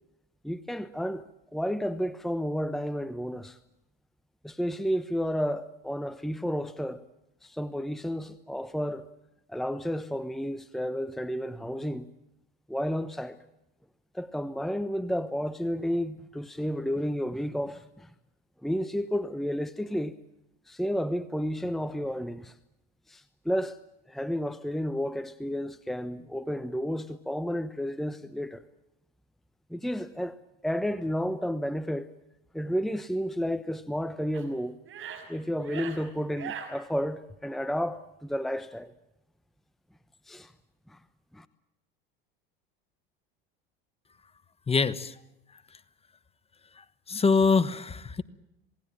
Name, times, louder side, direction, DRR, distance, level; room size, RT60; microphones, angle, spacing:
voice 1, 0.4-1.2 1.5-3.6 4.4-7.0 7.4-9.1 9.5-12.1 12.7-13.4 14.1-18.1 18.6-20.1 20.7-22.5 23.1-23.8 24.1-28.6 29.7-30.4 30.6-32.1 32.5-34.8 35.3-38.9 40.3-40.5 40.9-41.0 41.3-41.5, equal, ahead, 1.0 m, -31 dB
sound 1, 34.3-34.4 34.8-35.3 35.6-36.0 36.4-36.7, right 8 dB, 45° right, 5.7 m, -39 dB
voice 2, 44.7-45.2 45.5-45.6 46.8-48.2, left 4 dB, 20° left, 1.3 m, -25 dB
27.5 x 18.5 x 8.9 m
hypercardioid pair, 95°, 29 cm